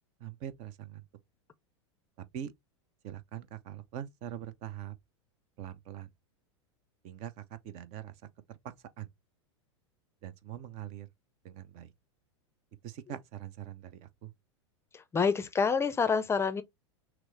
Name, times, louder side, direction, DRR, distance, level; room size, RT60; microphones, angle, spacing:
voice 1, 0.2-1.0 2.3-2.5 3.0-4.9 5.6-6.1 7.0-8.1 9.0-9.1 10.2-11.1 11.4-11.9 12.8-14.3, right 10 dB, 45° right, 0.6 m, -43 dB
voice 2, 14.9-16.6, left 5 dB, 15° left, 0.5 m, -27 dB
6.0 x 2.0 x 3.1 m
hypercardioid pair, 95°, 15 cm